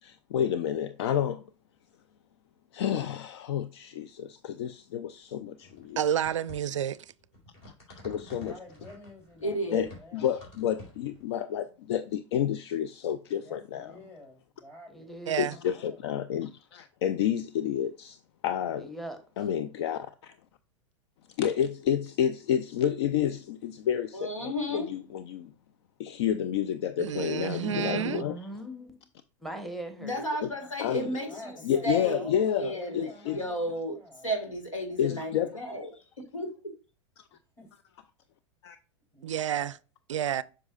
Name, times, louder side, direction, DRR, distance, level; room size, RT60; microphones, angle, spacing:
voice 1, 0.0-1.4 2.7-6.0 7.9-8.5 9.7-13.9 15.4-18.2 18.4-18.9 19.4-20.3 21.4-25.5 26.0-28.4 30.4-30.5 30.8-31.1 31.6-33.4 35.0-35.6 38.6-38.8, left 9 dB, 55° left, 0.5 m, -30 dB
sound 1, 5.6-11.2, left 1 dB, 40° left, 3.9 m, -50 dB
voice 2, 6.0-7.0 15.3-15.5 27.0-28.2 39.2-39.7 40.1-40.4, right 10 dB, 70° right, 0.4 m, -29 dB
voice 3, 8.3-10.3 10.6-10.8 13.4-15.1 15.7-16.0 31.3-34.5 34.8-35.8 37.3-37.7 39.1-39.7, left 1 dB, 15° left, 3.2 m, -50 dB
voice 4, 9.4-9.9 24.1-24.9 30.0-31.5 31.8-34.0 34.2-35.9 36.2-36.7, equal, 85° left, 1.9 m, -33 dB
voice 5, 14.9-15.6 18.8-19.5 27.3-29.0 29.4-30.3, right 1 dB, ahead, 1.2 m, -41 dB
7.8 x 5.9 x 2.4 m
figure-of-eight pair, 95°, 16 cm